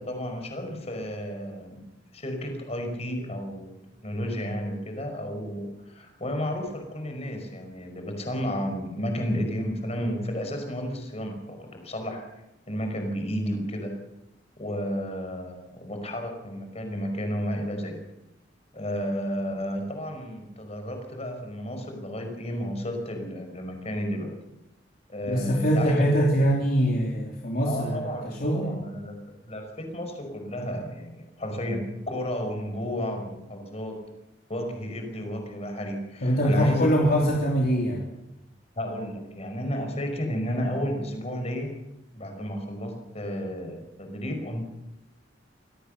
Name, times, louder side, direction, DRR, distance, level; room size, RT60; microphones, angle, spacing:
voice 1, 0.0-1.9 2.1-12.2 12.7-14.0 14.6-18.0 18.7-24.3 25.1-26.4 27.7-29.2 29.4-34.0 34.5-37.2 38.7-41.7 42.1-44.7, equal, 35° left, 5 dB, 5.4 m, -32 dB
voice 2, 25.3-28.8 36.2-38.1, equal, 55° left, -1 dB, 3.4 m, -23 dB
25.5 x 18.0 x 6.8 m, 0.90 s
head